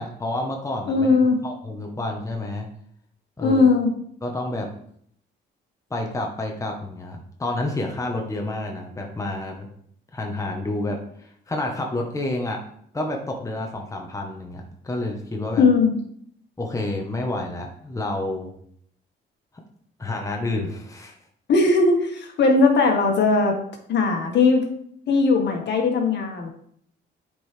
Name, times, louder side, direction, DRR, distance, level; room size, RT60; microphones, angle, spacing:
voice 1, 0.0-1.1 1.4-2.7 3.4-3.6 4.2-4.7 5.9-9.7 10.1-12.6 12.9-15.6 16.6-18.5 20.0-21.1, left 2 dB, 15° left, 1 dB, 1.2 m, -29 dB
voice 2, 0.9-1.4 3.4-3.9 15.6-15.9 21.5-23.5 23.9-24.6 25.1-26.5, left 4 dB, 60° left, 2 dB, 1.6 m, -19 dB
8.0 x 4.6 x 3.4 m, 0.66 s
cardioid pair, 90°, 20 cm